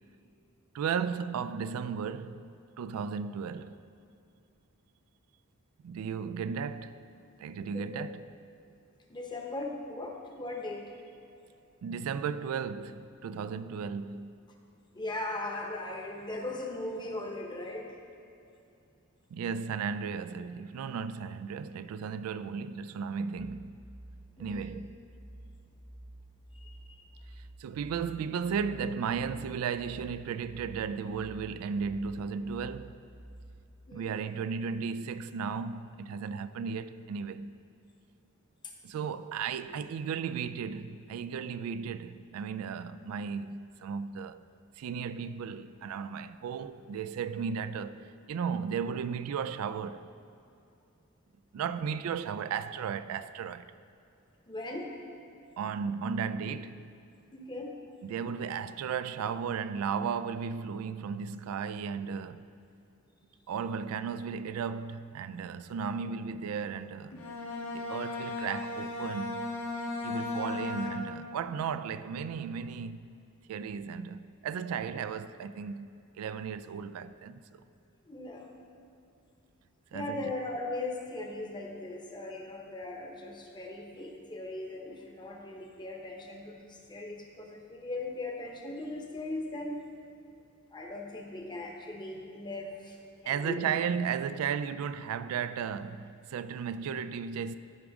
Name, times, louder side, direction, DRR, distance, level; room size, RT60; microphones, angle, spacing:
voice 1, 0.7-2.5 2.8-3.8 5.8-7.0 7.4-8.3 11.8-14.3 19.3-23.8 24.4-25.0 27.6-33.0 33.9-37.6 38.8-44.5 44.8-50.1 51.5-53.7 55.6-56.9 58.0-62.5 63.5-67.2 67.7-69.5 70.0-73.1 73.5-77.6 79.9-80.2 93.3-97.6, right 6 dB, 90° right, 0.3 m, -35 dB
voice 2, 7.7-8.0 9.1-10.9 14.9-18.0 24.4-24.7 26.5-27.0 33.9-34.2 38.6-38.7 54.5-54.9 57.3-57.7 78.1-78.5 79.9-89.8 90.7-93.7, left 2 dB, 20° left, 0.9 m, -39 dB
sound 1, 23.4-33.6, right 1 dB, 30° right, 0.7 m, -50 dB
Bowed string instrument, 67.1-71.4, left 2 dB, 90° left, 1.0 m, -36 dB
13.5 x 4.9 x 3.6 m
head